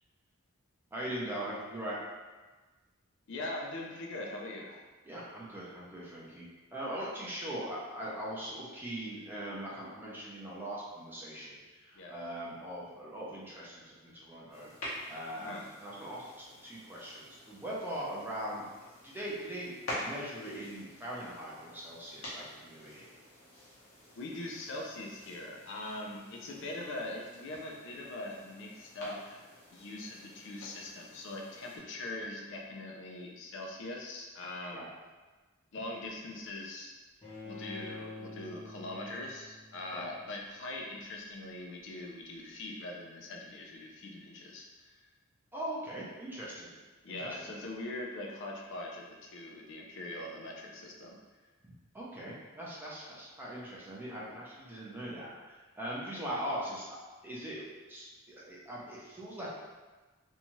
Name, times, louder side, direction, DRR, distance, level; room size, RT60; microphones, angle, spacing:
voice 1, 0.9-2.0 5.0-14.7 15.1-18.6 19.0-23.1 34.7-34.9 39.9-40.1 45.5-46.7 47.1-47.5 51.9-57.0 57.2-59.5, right 1 dB, 10° right, -6 dB, 0.5 m, -41 dB
voice 2, 3.3-4.8 12.0-12.2 15.3-15.7 24.2-29.4 29.7-34.9 35.7-36.9 37.4-45.0 47.0-51.2, left 2 dB, 60° left, 0 dB, 0.4 m, -42 dB
sound 1, 14.5-31.8, left 1 dB, 85° left, 0.9 m, -48 dB
Bowed string instrument, 37.2-40.3, left 2 dB, 30° left, 0.9 m, -47 dB
2.6 x 2.3 x 2.9 m, 1.3 s
head